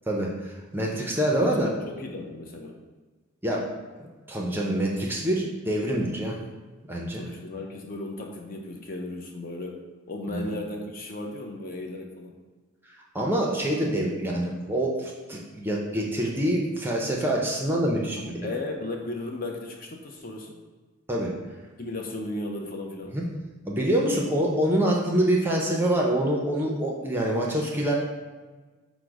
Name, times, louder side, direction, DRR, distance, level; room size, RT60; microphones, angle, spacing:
voice 1, 0.1-1.7 3.4-3.7 4.3-6.4 6.9-7.3 10.3-10.5 13.1-18.5 21.1-21.3 23.1-23.2 23.6-27.9, right 1 dB, 10° right, -2 dB, 0.5 m, -26 dB
voice 2, 1.2-2.8 7.1-9.8 10.1-12.3 18.2-20.6 21.8-23.2, left 2 dB, 40° left, 2 dB, 0.5 m, -35 dB
5.0 x 2.1 x 4.6 m, 1.3 s
head